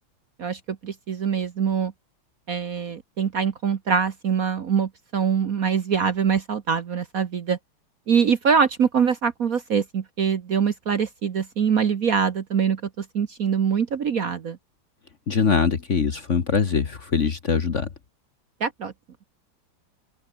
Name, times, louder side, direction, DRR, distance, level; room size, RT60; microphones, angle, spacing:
voice 1, 0.4-1.9 2.5-7.6 8.1-14.6 18.6-18.9, right 7 dB, 50° right, 1.3 m, -24 dB
voice 2, 15.3-17.9, left 5 dB, 40° left, 1.4 m, -22 dB
open air
omnidirectional pair, 2.3 m